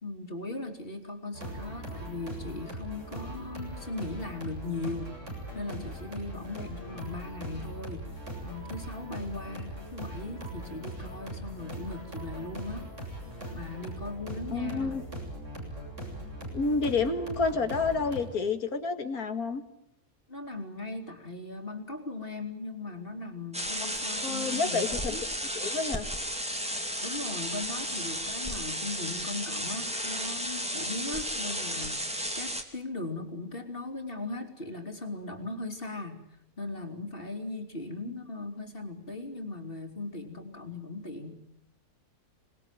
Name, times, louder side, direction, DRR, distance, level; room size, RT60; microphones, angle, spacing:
voice 1, 0.0-5.1 5.6-12.9 13.5-15.0 20.3-25.2 27.0-36.2 36.6-41.4, left 2 dB, 40° left, 4 dB, 3.5 m, -38 dB
sound 1, 1.3-18.2, right 1 dB, 55° right, 8.0 m, -40 dB
voice 2, 14.5-15.0 16.5-19.6 24.2-25.2 25.5-26.1, left 4 dB, 85° left, 8 dB, 2.5 m, -29 dB
sound 2, 23.5-32.6, equal, 5° right, 2.7 m, -33 dB
26.5 x 21.0 x 9.1 m, 0.77 s
omnidirectional pair, 1.5 m